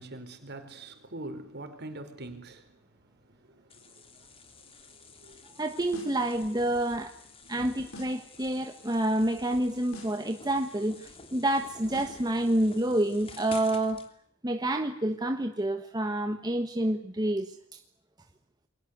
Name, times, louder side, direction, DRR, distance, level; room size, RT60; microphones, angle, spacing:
voice 1, 0.0-5.6 7.4-7.7, right 2 dB, 50° right, 4.5 m, -45 dB
sound 1, 3.7-14.1, left 4 dB, 25° left, 3.0 m, -50 dB
voice 2, 5.6-7.1 7.5-14.0 14.4-17.8, right 1 dB, 20° right, 1.3 m, -28 dB
sound 2, 5.9-6.3 7.9-8.3 9.9-10.3 11.9-12.3, left 2 dB, 75° left, 6.3 m, -46 dB
29.0 x 22.5 x 8.1 m
head